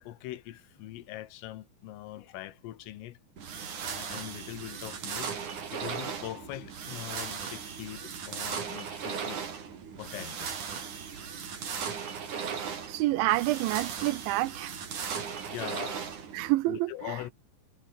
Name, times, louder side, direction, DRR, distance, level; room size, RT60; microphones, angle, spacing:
voice 1, 0.0-3.2 3.8-9.5 10.0-11.2 15.1-16.1 16.7-17.3, left 15 dB, 90° left, 4.1 m, -42 dB
sound 1, 3.4-16.5, right 6 dB, 45° right, 4.2 m, -37 dB
voice 2, 12.9-14.8 16.3-16.9, right 18 dB, 80° right, 2.9 m, -27 dB
omnidirectional pair, 5.7 m